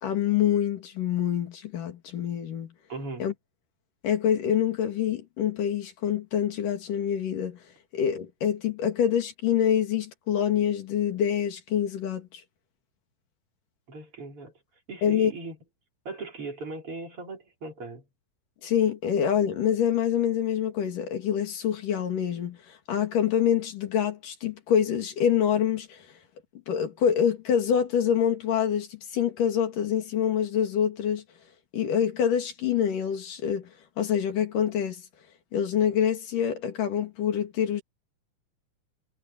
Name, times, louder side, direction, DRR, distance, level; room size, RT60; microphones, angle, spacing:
voice 1, 0.0-2.7 3.2-3.3 4.0-7.6 7.9-12.4 15.0-15.3 18.6-26.1 26.7-31.2 31.7-33.7 34.0-35.0 35.5-37.8, left 9 dB, 90° left, 4.1 m, -26 dB
voice 2, 2.9-3.3 13.9-14.5 14.9-15.6 16.0-18.0, right 3 dB, 45° right, 4.6 m, -38 dB
omnidirectional pair, 3.6 m